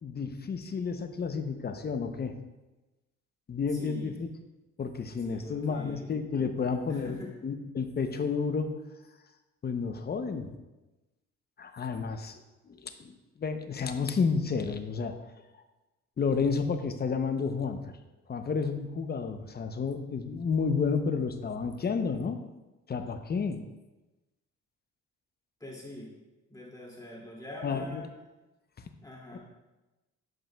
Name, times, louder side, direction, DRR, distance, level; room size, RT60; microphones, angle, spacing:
voice 1, 0.0-2.4 3.5-4.3 4.8-8.8 9.6-10.5 11.6-12.4 12.7-15.2 16.2-18.0 18.3-22.4 22.9-23.6 27.6-28.0 29.3-29.4, left 5 dB, 35° left, 8 dB, 0.7 m, -31 dB
voice 2, 3.7-4.1 5.2-6.1 6.9-7.3 25.6-26.1 26.5-28.1 29.0-29.4, left 1 dB, 10° left, -4 dB, 2.3 m, -43 dB
11.5 x 5.2 x 2.3 m, 1.1 s
cardioid pair, 90°, 30 cm